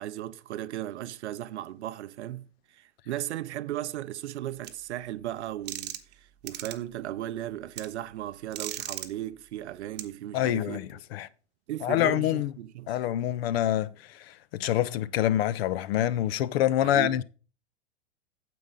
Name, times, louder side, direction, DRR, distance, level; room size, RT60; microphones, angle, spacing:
voice 1, 0.0-11.0 11.7-13.0 16.8-17.2, right 13 dB, 70° right, 0.6 m, -36 dB
sound 1, 4.6-4.7 5.7-6.1 6.5-6.7 7.8-7.9 8.5-9.1 10.0-10.1, right 13 dB, 30° right, 1.0 m, -36 dB
voice 2, 10.3-11.3 11.8-12.5 12.9-13.9 14.5-17.2, left 12 dB, 60° left, 0.7 m, -26 dB
9.2 x 7.7 x 3.8 m
hypercardioid pair, 100°, 35 cm